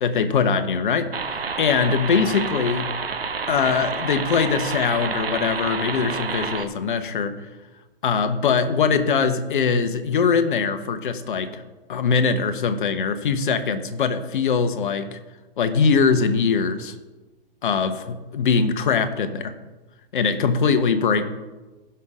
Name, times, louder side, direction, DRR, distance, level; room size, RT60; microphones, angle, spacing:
voice 1, 0.0-2.9 3.5-7.4 8.0-11.6 11.9-15.2 15.6-16.9 17.6-19.5 20.1-21.3, left 5 dB, 60° left, 10 dB, 1.1 m, -22 dB
sound 1, 1.1-6.7, right 5 dB, 85° right, 0.9 m, -29 dB
16.0 x 5.7 x 3.8 m, 1.2 s
figure-of-eight pair, 115°, 29 cm